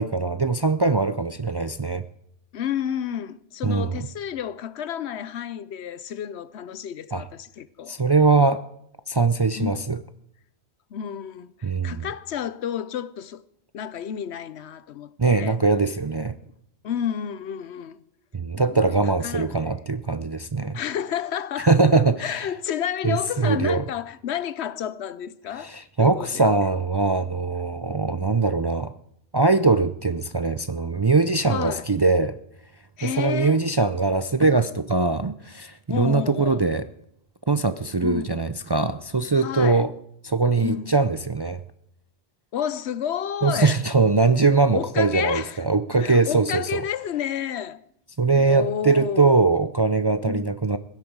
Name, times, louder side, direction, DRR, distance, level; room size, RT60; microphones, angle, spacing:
voice 1, 0.0-2.0 3.6-3.9 7.1-7.2 7.9-8.6 9.1-10.0 11.6-12.1 15.2-16.3 18.3-20.8 21.6-22.5 23.0-23.8 25.6-28.9 29.3-32.4 33.0-36.8 37.5-39.9 40.2-41.6 43.4-46.8 48.2-50.8, right 3 dB, 35° right, 0.4 m, -21 dB
voice 2, 2.5-8.0 9.5-9.9 10.9-13.4 13.7-15.6 16.8-18.0 18.6-18.8 19.2-19.6 20.7-21.7 22.2-26.5 28.1-28.3 31.5-31.9 33.0-33.6 35.9-36.6 38.0-38.3 39.4-39.8 40.6-40.9 42.5-43.8 44.7-45.6 46.0-47.8 48.3-49.5 50.2-50.5, left 9 dB, 80° left, 1.0 m, -31 dB
16.5 x 12.5 x 4.7 m
omnidirectional pair, 1.1 m